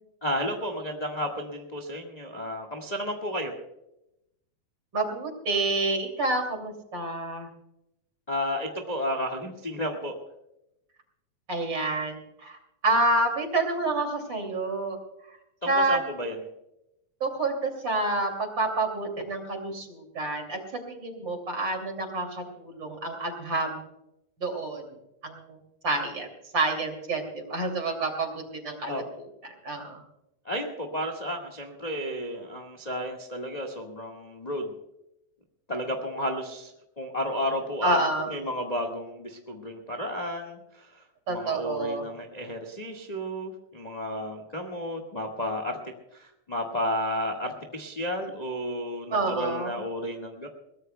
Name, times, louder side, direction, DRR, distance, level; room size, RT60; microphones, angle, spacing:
voice 1, 0.2-3.5 8.3-10.1 15.6-16.4 28.8-29.0 30.4-34.7 35.7-36.7 37.0-38.0 38.2-41.0 41.3-45.8 46.1-50.5, equal, 20° left, 3 dB, 1.1 m, -32 dB
voice 2, 4.9-7.5 11.5-12.6 12.8-15.0 15.7-16.0 17.2-23.8 24.4-24.8 25.2-25.6 25.8-26.3 26.5-29.0 29.4-30.0 37.8-38.3 41.3-42.1 49.1-49.7, right 2 dB, 40° right, 4 dB, 3.3 m, -28 dB
22.5 x 19.0 x 2.3 m, 0.85 s
omnidirectional pair, 3.5 m